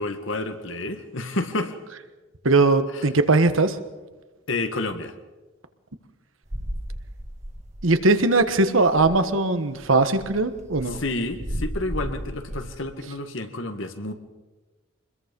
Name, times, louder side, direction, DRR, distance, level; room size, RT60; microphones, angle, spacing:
voice 1, 0.0-1.8 2.9-3.1 4.5-5.1 10.9-14.1, left 2 dB, 80° left, 7 dB, 1.9 m, -30 dB
voice 2, 2.4-3.8 7.8-11.0, right 3 dB, 90° right, 10 dB, 1.4 m, -20 dB
sound 1, 6.5-8.1 8.4-8.5 8.8-9.3 9.8-12.8, equal, 35° right, 1.5 m, -34 dB
25.5 x 21.5 x 5.4 m, 1.2 s
head